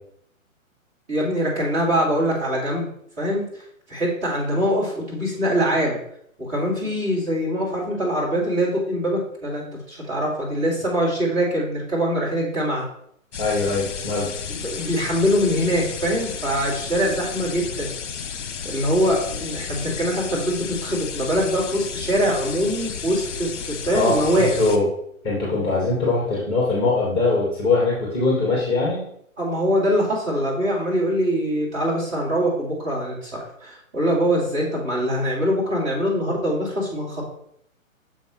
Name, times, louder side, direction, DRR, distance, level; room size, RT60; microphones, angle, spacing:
voice 1, 1.1-2.9 3.2-6.0 6.4-12.8 14.5-17.9 18.6-24.6 29.4-37.3, equal, 15° right, -7 dB, 2.1 m, -23 dB
sound 1, 13.3-24.8, left 7 dB, 60° left, 0.9 m, -33 dB
voice 2, 13.4-14.3 14.7-14.8 23.9-24.2 24.6-24.8 25.2-29.1, left 3 dB, 15° left, -5 dB, 1.5 m, -21 dB
7.0 x 5.5 x 3.1 m, 0.70 s
hypercardioid pair, 145°, 41 cm